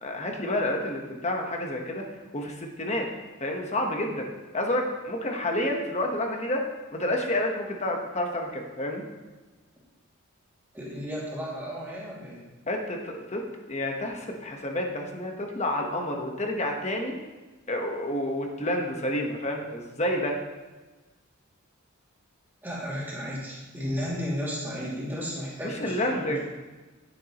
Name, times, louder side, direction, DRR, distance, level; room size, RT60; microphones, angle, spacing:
voice 1, 0.0-2.1 2.3-3.1 3.4-4.3 4.5-6.6 6.9-9.0 12.7-17.2 17.7-20.4 25.6-26.4, left 1 dB, 30° left, 2 dB, 1.2 m, -29 dB
voice 2, 10.7-12.4 22.6-26.4, equal, 10° right, -7 dB, 2.6 m, -33 dB
10.5 x 9.7 x 3.1 m, 1.2 s
head